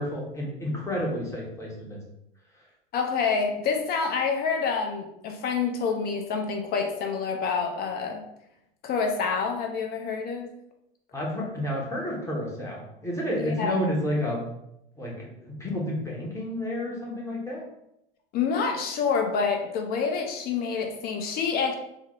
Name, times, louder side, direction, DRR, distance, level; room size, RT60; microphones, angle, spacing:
voice 1, 0.0-2.0 11.1-14.5 15.0-17.7, left 1 dB, 10° left, -3 dB, 0.9 m, -30 dB
voice 2, 2.9-8.2 8.8-10.5 13.4-13.8 18.3-21.7, left 5 dB, 30° left, 3 dB, 0.6 m, -27 dB
3.8 x 2.1 x 3.0 m, 0.80 s
figure-of-eight pair, 85°, 30 cm